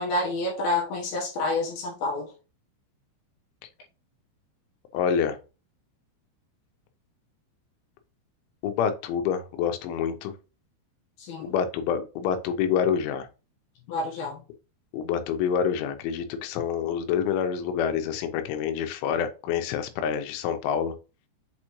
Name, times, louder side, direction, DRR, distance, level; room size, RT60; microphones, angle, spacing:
voice 1, 0.0-2.3 11.2-11.5 13.9-14.4, left 2 dB, 70° left, 2.6 m, -28 dB
voice 2, 4.9-5.4 8.6-10.3 11.4-13.3 14.9-20.9, left 7 dB, 85° left, 3.3 m, -27 dB
7.3 x 4.4 x 3.0 m
omnidirectional pair, 5.4 m